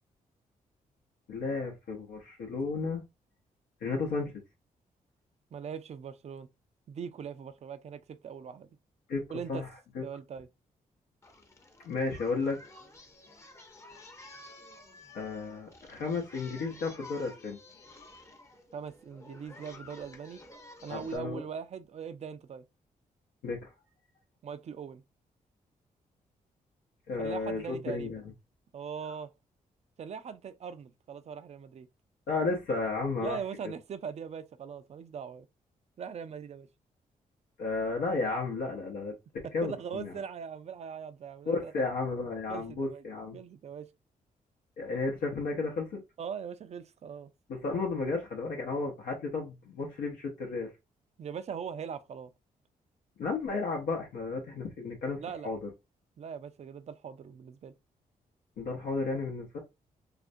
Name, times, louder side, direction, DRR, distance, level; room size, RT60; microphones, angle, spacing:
voice 1, 1.3-3.0 3.8-4.3 9.1-9.2 9.5-9.7 10.0-10.1 11.8-12.6 15.1-17.6 20.9-21.4 23.4-23.7 27.1-28.2 32.3-33.4 37.6-39.1 39.5-40.1 41.5-43.4 44.8-46.0 47.6-50.7 53.2-55.7 58.6-59.6, left 3 dB, 90° left, 0.6 m, -33 dB
voice 2, 5.5-6.5 6.9-8.7 9.3-9.6 10.0-10.5 18.7-20.4 20.8-22.6 24.4-25.0 27.2-28.1 28.7-29.3 30.0-31.9 33.2-35.5 36.0-36.7 39.4-41.9 42.5-43.0 43.3-43.9 46.2-47.3 51.2-52.3 55.2-55.5 56.2-57.7, right 7 dB, 50° right, 0.4 m, -41 dB
Singing, 11.2-21.2, left 2 dB, 20° left, 0.6 m, -52 dB
2.4 x 2.1 x 2.5 m
cardioid pair, 70°, 15 cm